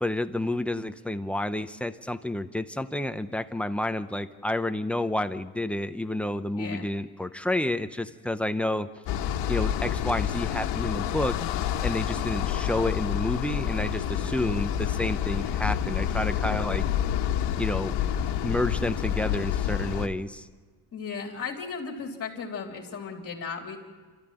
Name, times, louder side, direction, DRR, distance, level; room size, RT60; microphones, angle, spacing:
voice 1, 0.0-8.9 9.5-11.4 11.8-16.9 17.6-18.1 18.4-20.5, left 1 dB, 5° left, 9 dB, 0.6 m, -30 dB
voice 2, 6.5-6.9 20.9-23.8, left 5 dB, 35° left, 2 dB, 3.5 m, -36 dB
sound 1, 9.1-20.1, left 10 dB, 70° left, 1.5 m, -28 dB
27.5 x 14.0 x 9.0 m, 1.5 s
cardioid pair, 145°, 41 cm